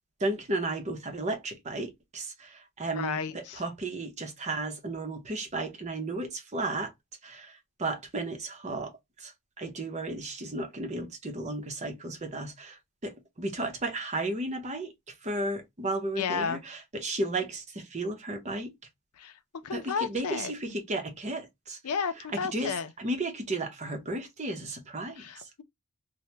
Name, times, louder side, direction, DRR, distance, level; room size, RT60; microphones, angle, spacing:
voice 1, 0.2-6.9 7.2-18.7 19.7-21.8 22.2-25.5, right 2 dB, 30° right, 0.7 m, -34 dB
voice 2, 2.9-3.6 16.2-16.6 19.2-19.4 19.6-20.5 21.8-22.9 25.2-25.6, left 6 dB, 90° left, 0.5 m, -32 dB
2.8 x 2.1 x 3.2 m
head